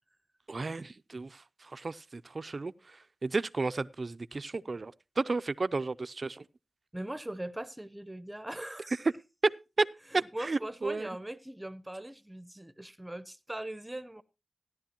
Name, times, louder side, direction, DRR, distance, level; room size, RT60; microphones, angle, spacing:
voice 1, 0.5-6.5 9.0-9.1 9.8-9.9 10.4-11.1, right 3 dB, 45° right, 0.5 m, -33 dB
voice 2, 6.9-8.9 10.1-14.2, right 1 dB, 10° right, 0.8 m, -40 dB
16.0 x 11.0 x 2.9 m
wide cardioid pair, 85°, 0 cm